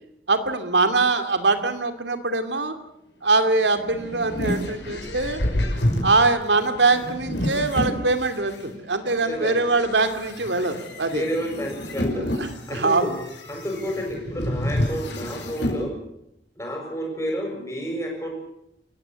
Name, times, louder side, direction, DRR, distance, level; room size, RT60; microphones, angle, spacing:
voice 1, 0.3-2.8 3.2-5.4 6.0-11.2 12.4-13.2, right 3 dB, 85° right, 9 dB, 2.6 m, -22 dB
sound 1, 3.6-8.6 9.2-15.8, left 1 dB, 80° left, 5.8 m, -29 dB
voice 2, 9.2-9.6 11.1-12.3 12.7-13.1 13.5-16.0 16.6-18.3, equal, 15° left, 1 dB, 7.0 m, -30 dB
28.5 x 15.0 x 8.1 m, 0.79 s
head